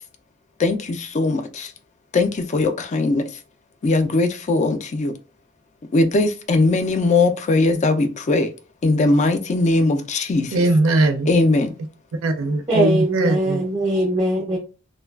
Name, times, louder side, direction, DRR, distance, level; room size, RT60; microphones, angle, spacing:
voice 1, 0.6-1.7 2.1-3.3 3.8-5.1 5.9-8.5 8.8-10.6 11.3-11.7, left 2 dB, 35° left, 0.4 m, -20 dB
voice 2, 10.5-11.3 12.2-13.6, right 2 dB, 70° right, 0.4 m, -19 dB
voice 3, 12.7-14.6, right 1 dB, 15° right, 0.5 m, -21 dB
3.0 x 2.3 x 2.3 m
head